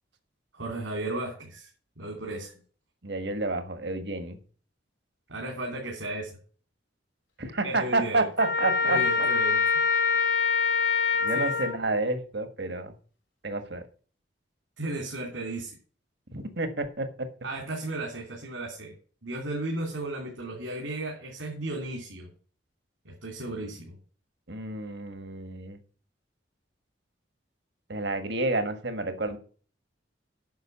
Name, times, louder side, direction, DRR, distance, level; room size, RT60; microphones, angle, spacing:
voice 1, 0.5-1.7 2.0-2.5 5.3-6.3 7.6-8.3 8.8-9.6 11.3-11.5 14.8-15.7 17.4-18.9 19.2-22.3 23.0-24.0, right 2 dB, 85° right, -1 dB, 3.1 m, -34 dB
voice 2, 3.0-4.4 7.4-9.3 11.2-12.9 13.4-13.8 16.3-17.1 24.5-25.8 27.9-29.4, right 2 dB, 60° right, 8 dB, 1.5 m, -29 dB
Trumpet, 8.4-11.8, left 5 dB, 70° left, 3.3 m, -24 dB
9.5 x 6.4 x 6.2 m, 0.42 s
head